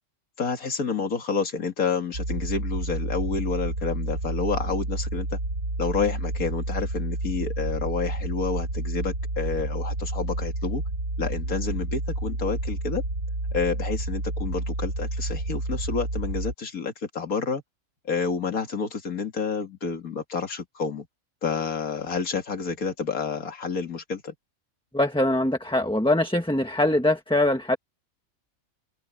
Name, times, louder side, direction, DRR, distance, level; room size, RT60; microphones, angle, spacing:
voice 1, 0.4-5.4 5.8-10.8 11.2-13.0 13.5-17.6 18.0-21.1 21.4-24.3, left 5 dB, 85° left, 2.6 m, -29 dB
sound 1, 2.1-16.5, right 2 dB, 90° right, 7.5 m, -30 dB
voice 2, 24.9-27.8, left 1 dB, 5° left, 1.3 m, -22 dB
omnidirectional pair, 1.5 m